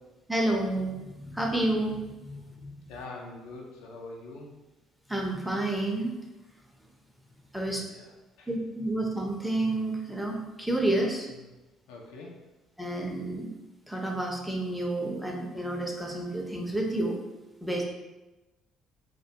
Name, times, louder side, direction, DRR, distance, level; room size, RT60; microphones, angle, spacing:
voice 1, 0.3-2.7 5.1-6.2 7.5-7.8 8.5-11.3 12.8-13.5 13.9-17.2 17.6-17.8, right 1 dB, ahead, 0 dB, 0.5 m, -30 dB
voice 2, 2.9-4.5 7.8-8.5 11.3-11.5 11.9-12.4, left 3 dB, 70° left, -1 dB, 0.3 m, -44 dB
2.2 x 2.1 x 2.7 m, 1.0 s
figure-of-eight pair, 50°, 0 cm